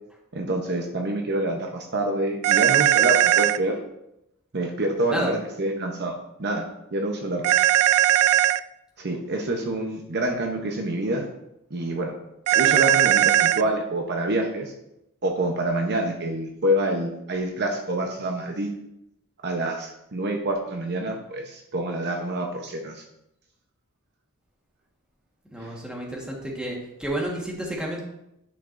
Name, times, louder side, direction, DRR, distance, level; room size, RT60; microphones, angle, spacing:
voice 1, 0.3-3.8 4.5-6.6 6.9-7.5 9.0-11.3 11.7-12.1 12.6-14.7 15.2-18.7 19.4-23.0 25.6-25.8, right 1 dB, 50° right, 2 dB, 0.8 m, -27 dB
sound 1, 2.4-3.6 7.4-8.6 12.5-13.6, right 13 dB, 90° right, 0.3 m, -18 dB
voice 2, 25.5-28.0, right 1 dB, 5° right, -2 dB, 1.4 m, -30 dB
10.0 x 5.8 x 2.6 m, 0.82 s
head